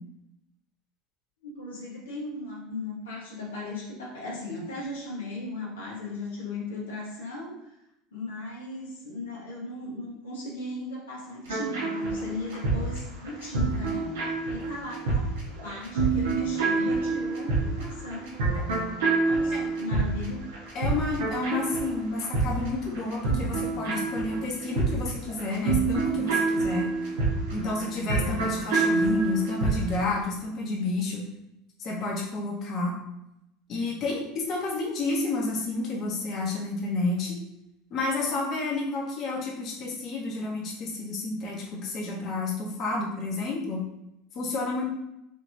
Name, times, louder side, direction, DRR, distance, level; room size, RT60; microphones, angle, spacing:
voice 1, 1.4-7.7 8.1-15.3 15.6-18.3 19.2-20.5 28.1-28.4, left 2 dB, 85° left, -5 dB, 1.3 m, -37 dB
sound 1, 11.5-30.1, right 3 dB, 80° right, 1.2 m, -27 dB
voice 2, 20.7-26.9 27.5-31.2 31.8-33.0 33.7-37.3 37.9-43.8 44.3-44.8, left 3 dB, 45° left, -3 dB, 1.2 m, -30 dB
5.0 x 2.9 x 2.8 m, 0.85 s
hypercardioid pair, 85°, 0 cm